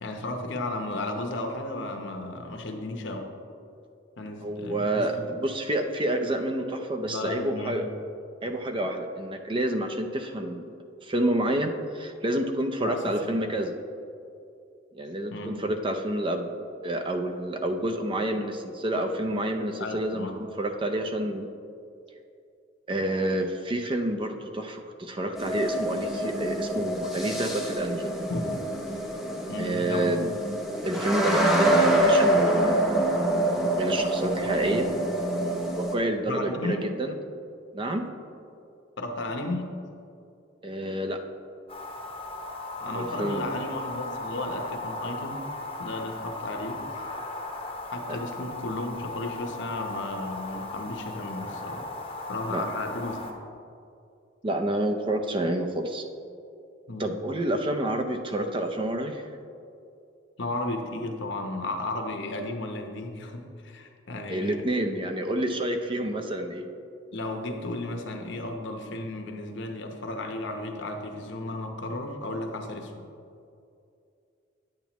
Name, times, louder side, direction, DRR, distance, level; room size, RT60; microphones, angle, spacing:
voice 1, 0.0-3.3 4.2-5.3 7.1-7.9 12.8-13.4 15.3-15.6 19.8-20.4 28.3-28.4 29.5-30.3 34.4-34.9 36.3-36.9 39.0-39.8 42.8-45.5 45.8-46.8 47.9-51.9 52.3-53.2 56.9-57.2 60.4-64.7 67.1-72.9, left 2 dB, 65° left, 4 dB, 0.9 m, -34 dB
voice 2, 4.4-7.9 8.4-10.7 11.0-13.7 14.9-16.5 16.8-21.5 22.9-28.1 29.6-30.3 30.8-32.8 33.8-34.9 35.7-37.1 37.7-38.0 40.6-41.2 42.9-43.5 48.1-48.2 52.5-52.6 54.4-56.0 57.0-59.2 64.3-66.7, right 1 dB, 25° right, 6 dB, 0.5 m, -28 dB
sound 1, 25.4-35.9, right 1 dB, ahead, 0.8 m, -26 dB
sound 2, 41.7-53.3, left 2 dB, 30° left, 0.8 m, -37 dB
9.1 x 8.8 x 3.0 m, 2.5 s
head